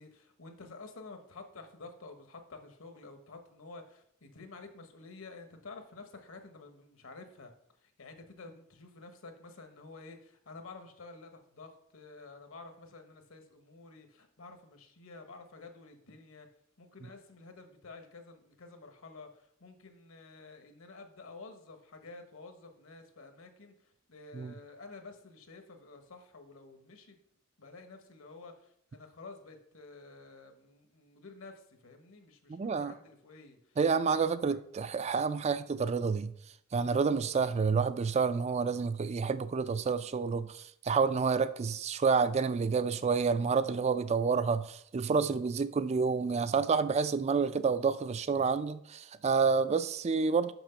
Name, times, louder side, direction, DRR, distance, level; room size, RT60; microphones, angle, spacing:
voice 1, 0.0-7.5 7.8-16.5 16.8-27.2 27.6-33.8 34.0-34.6, left 3 dB, 70° left, 1.2 m, -50 dB
voice 2, 32.5-32.9 33.8-36.3 36.7-50.5, right 5 dB, 30° right, 0.3 m, -29 dB
6.1 x 5.9 x 5.7 m
head